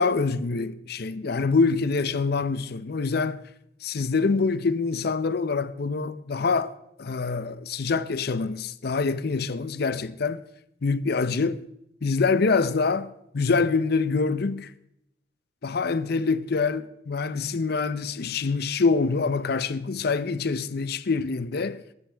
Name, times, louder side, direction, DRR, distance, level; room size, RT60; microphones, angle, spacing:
voice 1, 0.0-3.4 3.8-6.7 7.0-10.4 10.8-11.6 12.0-14.7 15.6-21.8, left 4 dB, 60° left, 0.6 m, -25 dB
22.0 x 12.5 x 3.4 m
head